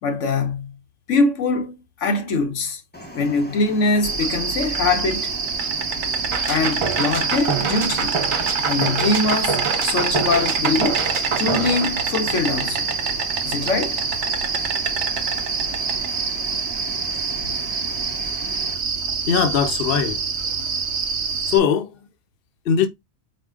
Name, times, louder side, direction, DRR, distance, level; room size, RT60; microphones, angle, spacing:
voice 1, 0.0-0.8 1.1-2.8 3.1-5.3 6.5-8.2 8.7-11.0 11.4-12.9 13.4-14.0, left 3 dB, 85° left, 1.2 m, -23 dB
sound 1, 2.9-18.7, equal, 15° left, 0.5 m, -39 dB
Insect, 4.0-21.6, right 5 dB, 70° right, 1.0 m, -25 dB
sound 2, 6.3-12.5, right 5 dB, 50° right, 0.4 m, -26 dB
voice 2, 19.3-20.2 20.6-20.7 21.5-21.9 22.7-22.9, left 7 dB, 55° left, 0.8 m, -20 dB
4.9 x 2.2 x 3.6 m
omnidirectional pair, 1.2 m